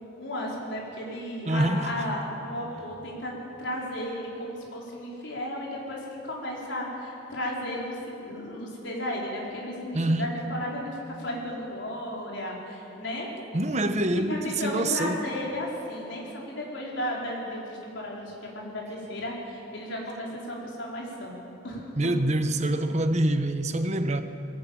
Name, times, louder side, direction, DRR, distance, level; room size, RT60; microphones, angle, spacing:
voice 1, 0.2-3.3 3.6-13.3 13.7-13.8 14.1-22.1, left 1 dB, 85° left, 4.6 m, -34 dB
voice 2, 1.5-1.9 9.9-10.3 13.5-15.2 21.9-24.2, right 1 dB, 40° right, 1.0 m, -25 dB
21.0 x 14.0 x 8.8 m
head